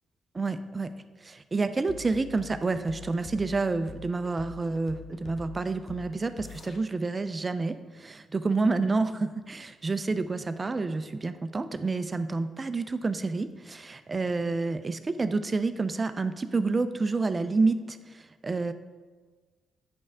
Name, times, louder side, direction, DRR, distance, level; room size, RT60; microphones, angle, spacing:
voice 1, 0.3-0.9 1.2-18.7, right 3 dB, 35° right, 11 dB, 0.5 m, -29 dB
sound 1, 1.9-6.8, left 6 dB, 55° left, 0.7 m, -45 dB
8.9 x 5.3 x 3.6 m, 1.4 s
hypercardioid pair, 40°, 0 cm